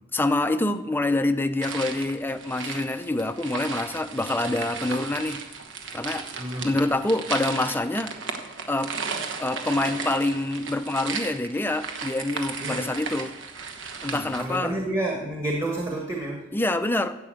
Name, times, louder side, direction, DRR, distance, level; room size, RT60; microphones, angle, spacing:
voice 1, 0.1-5.4 5.9-6.2 6.6-8.1 8.7-8.9 9.4-13.3 14.0-14.7 16.5-17.2, left 2 dB, 10° left, 9 dB, 0.5 m, -26 dB
sound 1, 1.6-14.6, right 5 dB, 65° right, 1.2 m, -35 dB
voice 2, 6.4-6.7 12.6-12.9 14.0-16.4, right 1 dB, 15° right, 0 dB, 1.4 m, -30 dB
11.0 x 7.9 x 7.7 m, 1.0 s
head